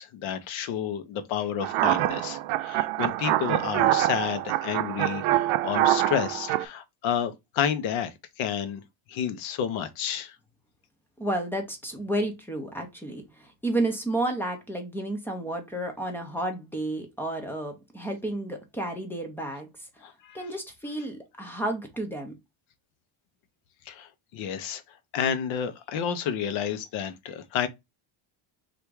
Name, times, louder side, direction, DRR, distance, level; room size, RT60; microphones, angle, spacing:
voice 1, 0.0-8.8 9.1-10.4 20.0-20.5 23.9-24.8 25.1-27.7, left 8 dB, 75° left, 0.8 m, -30 dB
sound 1, 1.6-6.6, right 14 dB, 85° right, 0.6 m, -25 dB
voice 2, 11.2-19.7 20.3-22.3, right 1 dB, 5° left, 0.3 m, -31 dB
3.4 x 2.6 x 4.5 m
cardioid pair, 180°, 48 cm